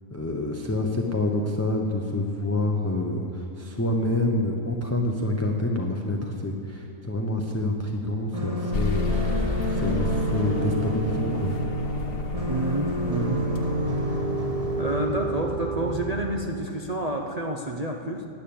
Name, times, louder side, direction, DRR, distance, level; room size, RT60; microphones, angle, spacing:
voice 1, 0.1-9.1 9.7-11.5, left 1 dB, 15° left, 1 dB, 0.6 m, -27 dB
sound 1, 8.3-16.3, equal, 25° right, 1.2 m, -28 dB
sound 2, 8.7-14.8, left 3 dB, 45° left, 1.0 m, -32 dB
voice 2, 12.5-13.4 14.0-14.3 14.7-18.3, right 1 dB, 40° right, 2 dB, 0.6 m, -29 dB
12.5 x 9.1 x 8.7 m, 2.5 s
omnidirectional pair, 1.7 m